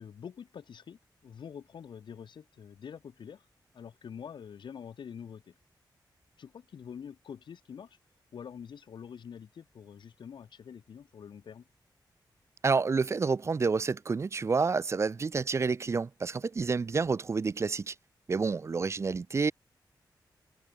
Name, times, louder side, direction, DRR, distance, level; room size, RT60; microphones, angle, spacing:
voice 1, 0.0-3.4 3.7-5.5 6.4-8.0 8.3-11.7, left 7 dB, 85° left, 2.8 m, -46 dB
voice 2, 12.6-17.9 18.3-19.5, right 4 dB, 35° right, 0.7 m, -29 dB
wide cardioid pair, 145°, 8 cm